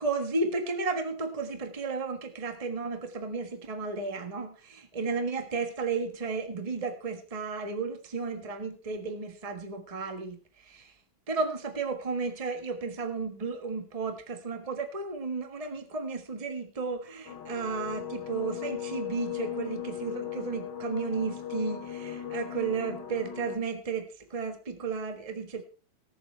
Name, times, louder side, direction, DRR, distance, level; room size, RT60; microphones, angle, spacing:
voice 1, 0.0-10.9 11.3-25.6, right 4 dB, 20° right, 6 dB, 1.4 m, -33 dB
sound 1, 17.3-23.6, left 10 dB, 75° left, 1.8 m, -37 dB
18.5 x 6.9 x 4.5 m, 0.36 s
omnidirectional pair, 2.0 m